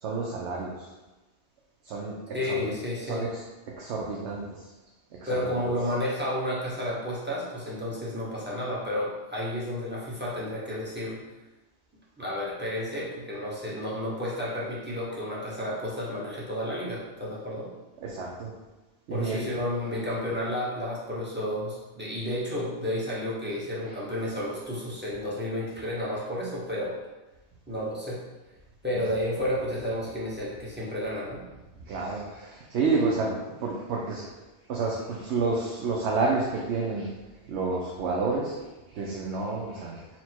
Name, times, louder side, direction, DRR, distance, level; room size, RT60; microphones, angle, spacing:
voice 1, 0.0-0.9 1.8-2.7 3.0-3.4 3.8-4.4 5.2-5.7 18.0-18.5 19.1-19.6 28.9-29.1 31.9-34.3 34.7-37.1 37.5-38.6 38.9-40.0, right 4 dB, 75° right, -2 dB, 0.9 m, -30 dB
voice 2, 2.3-3.2 5.3-11.2 12.2-17.7 19.1-27.0 27.7-28.2 28.8-31.4, left 1 dB, 10° right, -7 dB, 0.8 m, -31 dB
4.3 x 2.1 x 4.3 m, 1.1 s
omnidirectional pair, 1.2 m